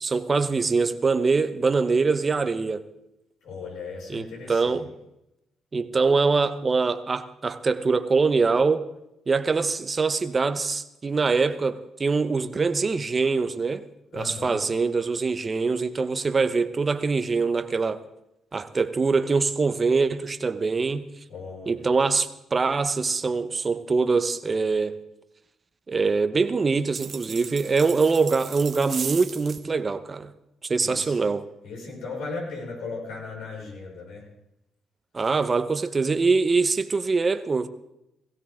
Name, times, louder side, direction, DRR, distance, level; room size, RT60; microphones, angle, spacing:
voice 1, 0.0-2.8 4.1-4.9 5.7-8.9 9.3-13.8 14.1-18.0 18.5-21.1 21.7-25.0 25.9-30.3 30.7-31.5 35.1-37.7, right 4 dB, 30° right, 0.9 m, -23 dB
voice 2, 3.4-4.9 14.1-14.6 21.3-21.9 30.8-31.2 31.6-34.2, left 4 dB, 85° left, 5.9 m, -37 dB
sound 1, 26.9-29.6, right 6 dB, 50° right, 1.2 m, -36 dB
17.0 x 16.0 x 3.7 m
cardioid pair, 90°, 0 cm